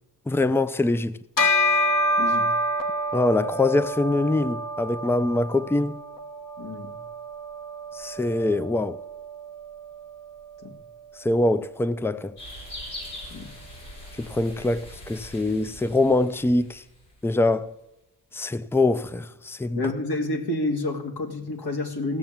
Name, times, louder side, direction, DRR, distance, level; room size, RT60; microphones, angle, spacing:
voice 1, 0.3-1.2 3.1-6.0 7.9-9.0 11.2-12.4 14.2-16.8 17.2-17.7 18.3-19.8, left 2 dB, 5° left, 0.5 m, -24 dB
Bell, 1.4-11.0, left 1 dB, 50° left, 1.6 m, -28 dB
voice 2, 2.2-2.5 6.6-7.0 10.6-10.7 13.3-13.5 19.8-22.2, left 2 dB, 70° left, 2.3 m, -29 dB
sound 1, 12.4-17.4, left 1 dB, 85° left, 6.1 m, -42 dB
16.5 x 7.0 x 7.4 m
cardioid pair, 70°, 40 cm